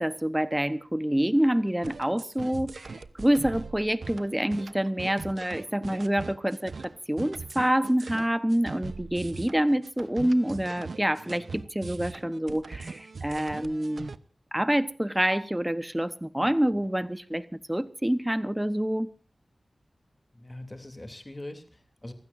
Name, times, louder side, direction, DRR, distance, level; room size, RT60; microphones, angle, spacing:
voice 1, 0.0-14.1 14.5-19.1, right 1 dB, 10° right, 1.1 m, -27 dB
sound 1, 1.8-14.2, right 4 dB, 75° right, 0.9 m, -40 dB
voice 2, 20.3-22.1, left 1 dB, 20° left, 3.0 m, -42 dB
29.5 x 15.5 x 2.7 m
wide cardioid pair, 70°, 0 cm